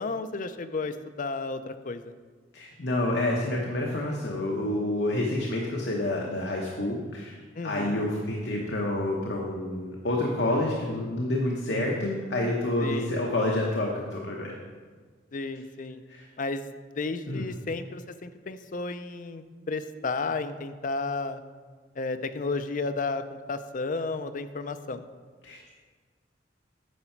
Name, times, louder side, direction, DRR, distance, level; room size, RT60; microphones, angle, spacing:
voice 1, 0.0-2.1 7.5-8.1 12.8-13.2 15.3-16.0 16.4-21.4 22.0-25.0, left 3 dB, 45° left, 10 dB, 0.5 m, -33 dB
voice 2, 2.5-7.4 7.6-14.5 16.1-16.3 17.3-17.5 25.4-25.7, left 1 dB, 65° left, -1 dB, 1.0 m, -28 dB
9.8 x 5.8 x 4.5 m, 1.5 s
head